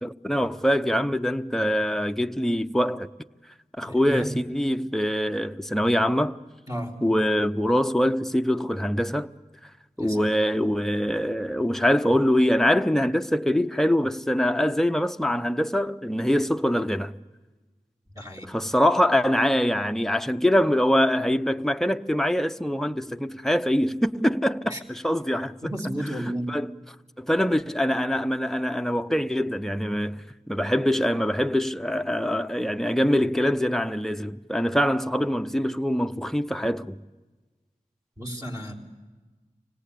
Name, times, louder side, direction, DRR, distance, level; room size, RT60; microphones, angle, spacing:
voice 1, 0.0-3.1 3.8-6.4 7.0-9.3 10.0-17.1 18.4-25.6 26.5-26.7 27.2-37.0, equal, 5° left, 0.7 m, -24 dB
voice 2, 3.9-4.3 6.7-7.0 10.0-10.3 18.2-18.5 24.7-24.8 25.6-26.6 38.2-38.7, equal, 25° right, 3.5 m, -32 dB
25.5 x 18.0 x 8.4 m
wide cardioid pair, 45°, 14 cm